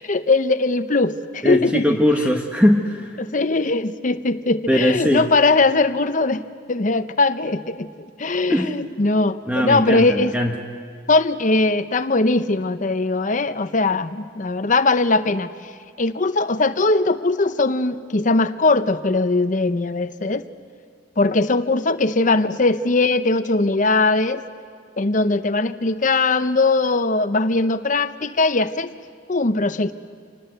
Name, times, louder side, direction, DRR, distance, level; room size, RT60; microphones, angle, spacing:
voice 1, 0.0-2.0 3.2-10.3 11.1-15.5 16.0-20.4 21.2-24.4 25.0-28.9 29.3-29.9, left 3 dB, 45° left, 11 dB, 0.8 m, -20 dB
voice 2, 1.4-3.2 4.7-5.3 8.5-8.7 9.5-10.6, equal, 5° right, 2 dB, 1.2 m, -20 dB
27.0 x 19.5 x 8.0 m, 2.1 s
head